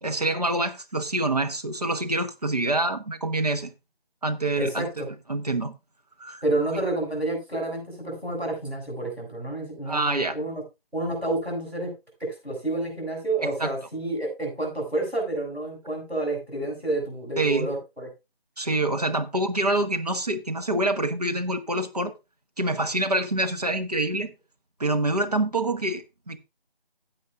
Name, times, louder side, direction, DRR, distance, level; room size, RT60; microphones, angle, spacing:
voice 1, 0.0-3.7 4.2-4.9 5.3-5.7 6.2-6.4 9.9-10.3 13.6-13.7 17.4-17.7 18.6-22.1 22.6-24.3 24.8-26.4, right 2 dB, 40° right, 1.1 m, -26 dB
voice 2, 4.6-5.1 6.4-10.6 10.9-11.9 12.2-18.1, right 2 dB, 5° right, 6.0 m, -29 dB
15.5 x 8.5 x 2.6 m
figure-of-eight pair, 165°, 31 cm